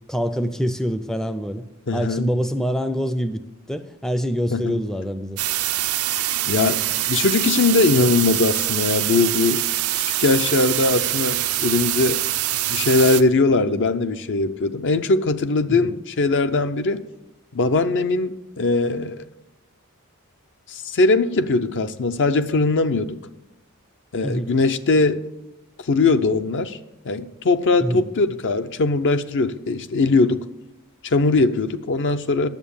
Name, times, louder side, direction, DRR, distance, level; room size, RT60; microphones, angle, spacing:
voice 1, 0.1-1.6 1.9-3.4 3.7-5.4 13.7-13.8 15.7-15.9 24.2-24.5 27.8-28.0, equal, ahead, 0.4 m, -25 dB
voice 2, 1.9-2.3 4.5-4.8 6.5-9.7 10.2-12.2 12.7-17.0 17.5-19.2 20.7-23.2 24.1-25.2 25.8-26.8 27.0-30.5 31.0-32.5, left 3 dB, 55° left, 0.6 m, -20 dB
sound 1, 5.4-13.2, right 14 dB, 75° right, 0.5 m, -24 dB
10.5 x 7.2 x 7.1 m
head